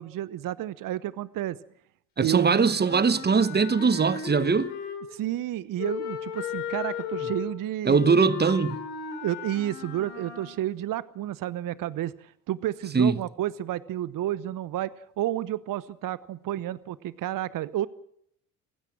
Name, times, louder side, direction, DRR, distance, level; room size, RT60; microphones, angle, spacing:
voice 1, 0.0-1.6 2.2-2.6 5.1-8.0 9.2-17.9, right 13 dB, 45° right, 0.9 m, -31 dB
voice 2, 2.2-4.7 7.8-8.8 12.9-13.2, right 5 dB, 20° right, 1.0 m, -21 dB
Wind instrument woodwind instrument, 2.3-5.2 5.8-10.6, left 8 dB, 75° left, 3.8 m, -36 dB
29.5 x 16.0 x 6.1 m
hypercardioid pair, 55°, 46 cm